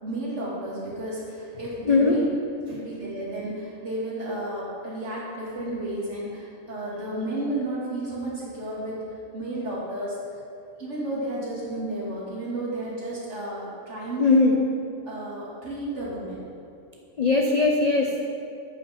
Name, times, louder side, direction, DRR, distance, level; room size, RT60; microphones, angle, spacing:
voice 1, 0.0-2.3 2.7-9.0 9.3-10.2 10.8-14.5 15.1-16.4, right 1 dB, 55° right, -7 dB, 2.5 m, -32 dB
voice 2, 1.9-2.2 2.7-2.8 14.2-14.5 17.2-18.2, left 3 dB, 50° left, 1 dB, 0.5 m, -20 dB
8.7 x 5.3 x 5.7 m, 2.6 s
omnidirectional pair, 1.4 m